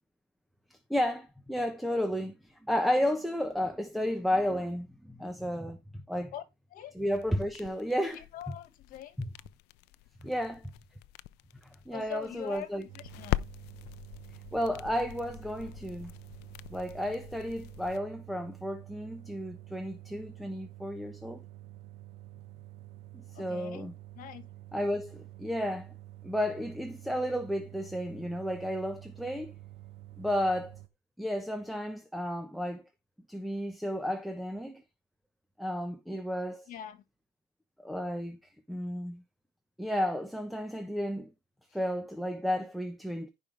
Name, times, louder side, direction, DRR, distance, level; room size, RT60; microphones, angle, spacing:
voice 1, 0.7-6.3 7.0-8.2 10.2-10.7 11.6-12.9 14.5-16.1 16.7-21.4 23.1-23.9 24.7-25.9 26.2-29.5 30.2-30.8 31.2-32.8 33.3-34.8 35.6-36.7 37.8-38.4 38.7-39.2 39.8-41.3 41.7-43.3, equal, ahead, 1.1 m, -32 dB
sound 1, 7.0-18.0, left 17 dB, 80° left, 0.5 m, -42 dB
voice 2, 8.1-9.2 11.9-13.5 23.3-23.9 24.1-24.5 36.7-37.0 41.7-41.8, left 11 dB, 55° left, 1.9 m, -43 dB
sound 2, 12.9-30.9, right 15 dB, 85° right, 1.2 m, -49 dB
15.0 x 5.4 x 3.5 m
cardioid pair, 135°, 17 cm